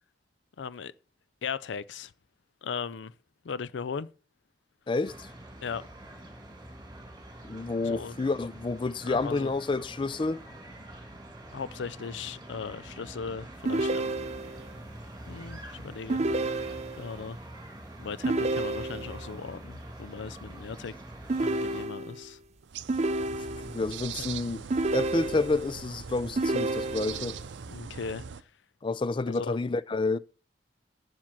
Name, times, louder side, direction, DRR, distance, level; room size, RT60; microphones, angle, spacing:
voice 1, 0.6-0.9 1.4-2.1 2.6-3.1 3.4-4.1 5.6-5.8 7.8-8.2 9.1-9.5 11.5-14.2 15.3-17.4 18.0-20.9 21.4-22.4 24.2-24.3 27.7-28.2 29.3-29.6, left 5 dB, 85° left, 0.5 m, -38 dB
voice 2, 4.9-5.3 7.4-10.4 23.7-24.6 24.9-27.4 28.8-30.2, left 3 dB, 25° left, 0.4 m, -29 dB
sound 1, 5.0-21.9, right 1 dB, 20° right, 2.3 m, -45 dB
sound 2, 13.6-14.7 16.1-17.2 18.2-19.3 21.3-22.3 22.9-23.9 24.7-25.7 26.4-27.4, right 2 dB, 40° right, 0.6 m, -30 dB
sound 3, 22.6-28.4, right 7 dB, 90° right, 0.6 m, -41 dB
7.5 x 6.0 x 7.3 m
head